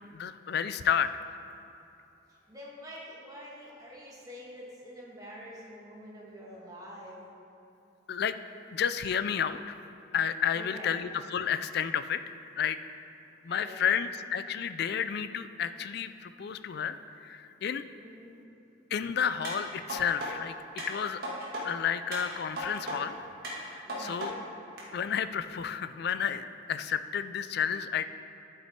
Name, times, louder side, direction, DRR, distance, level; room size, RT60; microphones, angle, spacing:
voice 1, 0.1-1.1 8.1-8.4 8.7-9.7 10.1-12.2 12.6-12.8 13.4-17.8 18.9-20.5 20.9-21.2 21.6-23.2 23.6-23.7 24.0-24.3 24.9-28.0, left 8 dB, 50° left, 12 dB, 0.3 m, -31 dB
voice 2, 2.3-7.2 10.5-10.9 13.4-13.9 18.0-18.4 23.8-24.3, equal, 15° right, -6 dB, 1.7 m, -46 dB
sound 1, 19.4-20.3 20.8-21.6 22.1-23.0 23.4-24.3 24.8-24.9, right 1 dB, 50° right, 1.9 m, -36 dB
12.0 x 6.0 x 4.3 m, 2.9 s
head